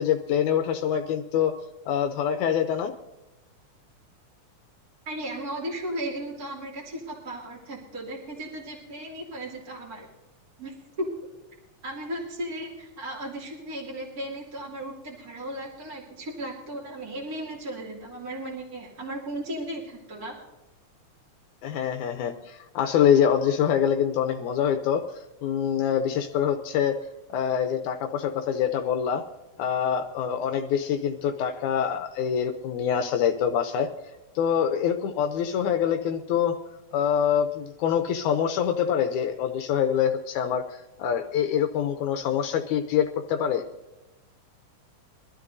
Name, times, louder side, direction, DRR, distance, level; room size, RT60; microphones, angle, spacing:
voice 1, 0.0-1.5 1.9-2.9 21.6-25.0 25.4-27.0 27.3-29.2 29.6-33.9 34.4-36.6 36.9-43.6, left 8 dB, 80° left, 6 dB, 2.1 m, -25 dB
voice 2, 5.1-10.1 10.6-11.1 11.8-20.4, right 1 dB, 30° right, -4 dB, 2.7 m, -36 dB
24.0 x 12.5 x 2.6 m, 1.0 s
omnidirectional pair, 3.5 m